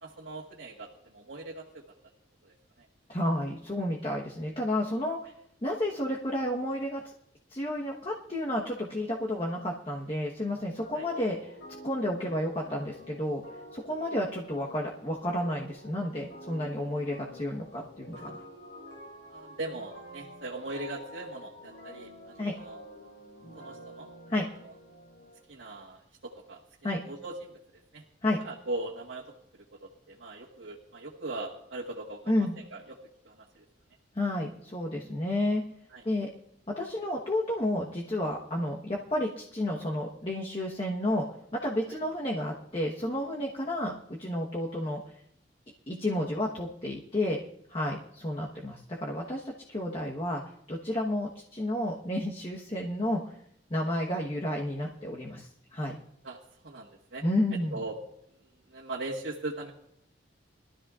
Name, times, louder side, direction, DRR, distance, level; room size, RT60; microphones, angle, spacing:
voice 1, 0.0-1.6 2.4-2.5 10.9-11.1 18.2-18.4 19.3-22.8 23.6-24.1 24.7-24.8 25.5-27.6 27.9-28.0 28.4-29.3 29.7-33.0 33.2-33.6 35.9-36.0 41.9-42.0 56.2-56.4 56.6-57.2 57.7-58.0 58.7-59.7, right 2 dB, 75° right, -4 dB, 1.5 m, -40 dB
voice 2, 3.1-5.2 5.6-7.0 7.5-11.5 11.8-13.4 13.7-18.4 22.4-22.6 24.3-24.4 26.8-27.0 28.2-28.4 32.3-32.5 34.1-35.6 36.0-36.3 36.8-41.2 41.5-45.0 45.9-47.4 47.7-50.4 50.7-53.3 53.7-55.9 57.2-57.8, left 1 dB, 30° left, -1 dB, 1.2 m, -31 dB
sound 1, 10.8-25.4, equal, 85° left, 4.4 m, -48 dB
22.0 x 13.0 x 2.5 m, 0.74 s
head